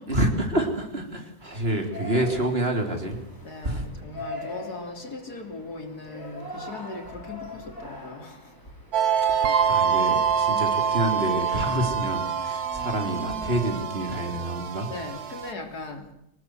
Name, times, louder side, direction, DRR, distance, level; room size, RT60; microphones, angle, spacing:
voice 1, 0.1-3.2 3.6-3.9 9.3-14.9, right 1 dB, 40° right, 5 dB, 3.8 m, -28 dB
Yell, 1.4-9.1, left 1 dB, 10° left, 4.6 m, -42 dB
voice 2, 3.4-8.8 9.4-9.6 14.9-16.1, left 2 dB, 75° left, 5 dB, 3.9 m, -39 dB
sound 1, 8.9-15.5, right 7 dB, 70° right, 1.6 m, -25 dB
25.0 x 18.5 x 7.9 m, 0.78 s
omnidirectional pair, 1.7 m